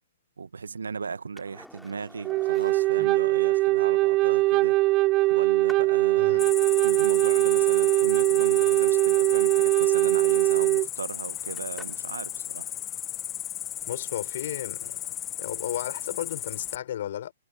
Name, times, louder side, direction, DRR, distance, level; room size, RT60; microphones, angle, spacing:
voice 1, 0.4-4.8 5.3-6.5 6.8-12.7, right 5 dB, 85° right, 1.6 m, -37 dB
Skateboard, 1.4-12.2 14.8-14.9, left 1 dB, ahead, 4.2 m, -53 dB
Wind instrument woodwind instrument, 2.2-10.9, right 19 dB, 35° right, 0.6 m, -22 dB
Cricket, 6.4-16.8, left 11 dB, 25° left, 1.5 m, -35 dB
voice 2, 13.9-15.0 15.4-17.3, left 11 dB, 60° left, 5.5 m, -34 dB
hypercardioid pair, 125°, 0 cm